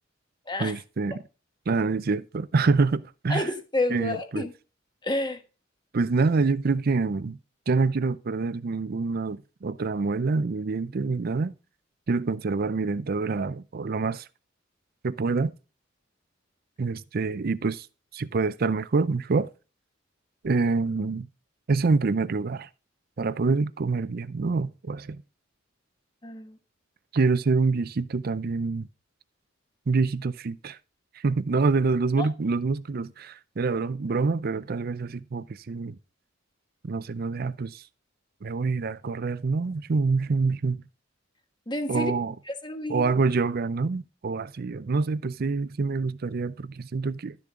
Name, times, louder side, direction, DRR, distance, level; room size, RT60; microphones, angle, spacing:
voice 1, 0.6-1.2 1.7-3.4 3.9-4.5 5.9-7.4 7.7-11.5 12.1-14.3 15.0-15.5 16.8-17.9 18.1-19.5 20.4-21.3 21.7-22.7 23.2-25.2 27.1-28.9 29.9-30.8 31.2-36.0 36.8-37.8 38.4-40.8 41.9-42.3 42.9-47.4, right 4 dB, 50° right, 0.5 m, -26 dB
voice 2, 3.3-4.5 5.0-5.4 26.2-26.6 32.2-32.3 41.7-42.1 42.5-43.0, left 2 dB, 25° left, 1.3 m, -29 dB
11.5 x 6.8 x 3.7 m
head